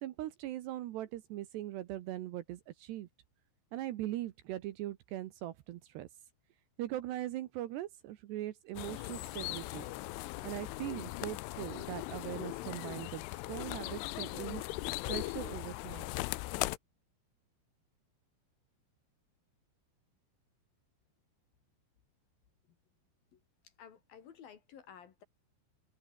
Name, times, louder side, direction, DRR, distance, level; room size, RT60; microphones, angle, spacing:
voice 1, 0.0-3.1 3.7-6.1 6.8-9.9 10.4-14.6 15.1-16.2, right 14 dB, 70° right, 2.9 m, -40 dB
sound 1, 8.8-16.8, left 20 dB, 80° left, 3.2 m, -39 dB
voice 2, 23.3-25.2, left 8 dB, 55° left, 3.4 m, -55 dB
omnidirectional pair, 5.7 m